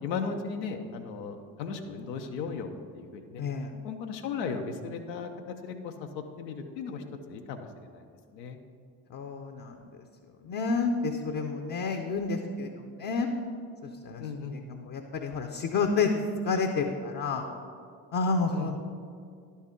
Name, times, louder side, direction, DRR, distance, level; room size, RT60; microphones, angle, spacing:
voice 1, 0.0-3.4 3.8-8.0 8.3-8.6 14.2-14.6 18.5-18.7, left 5 dB, 80° left, 5 dB, 0.7 m, -36 dB
voice 2, 3.4-3.7 9.1-9.8 10.4-13.3 14.0-14.2 14.5-17.5 18.1-18.8, left 4 dB, 40° left, 4 dB, 0.7 m, -29 dB
11.0 x 4.2 x 3.6 m, 2.2 s
hypercardioid pair, 50°, 50 cm